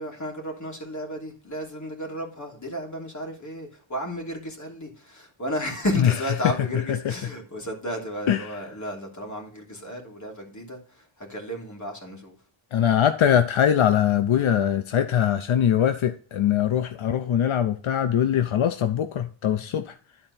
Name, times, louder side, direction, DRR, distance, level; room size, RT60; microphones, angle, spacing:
voice 1, 0.0-12.3, equal, 35° left, 3.0 m, -33 dB
voice 2, 8.3-8.6 12.7-19.9, left 9 dB, 80° left, 0.7 m, -22 dB
12.0 x 4.4 x 4.1 m
wide cardioid pair, 130°, 47 cm